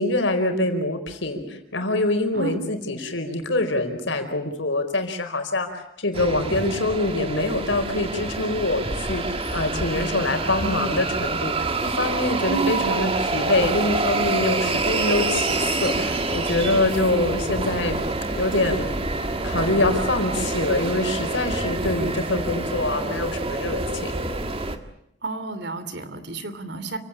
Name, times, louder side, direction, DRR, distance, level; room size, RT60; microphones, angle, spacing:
voice 1, 0.0-18.0 18.3-18.9 19.4-24.1, left 2 dB, 85° left, 5 dB, 4.8 m, -25 dB
sound 1, 6.1-24.8, right 3 dB, 30° right, 1.8 m, -27 dB
voice 2, 12.5-12.9 25.2-27.0, right 3 dB, 60° right, 12 dB, 3.0 m, -30 dB
29.5 x 17.5 x 8.6 m, 0.80 s
head